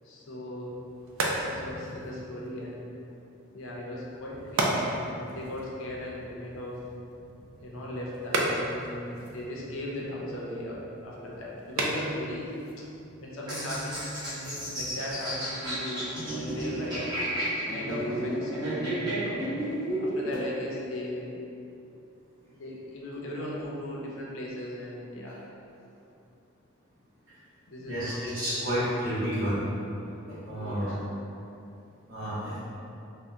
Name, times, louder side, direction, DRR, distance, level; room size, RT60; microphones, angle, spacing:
voice 1, 0.0-0.8 1.4-2.9 3.5-6.8 7.6-12.8 13.2-17.0 17.7-19.5 20.0-21.3 22.5-25.4 27.7-28.7 30.5-31.0, left 1 dB, 70° left, -4 dB, 0.5 m, -38 dB
sound 1, 0.6-14.1, right 1 dB, 90° right, 0.4 m, -35 dB
sound 2, 13.5-20.4, right 1 dB, 20° right, 0.8 m, -32 dB
voice 2, 27.8-29.6 30.3-30.9 32.1-32.6, equal, 70° right, -14 dB, 0.8 m, -30 dB
3.4 x 2.1 x 2.6 m, 2.7 s
head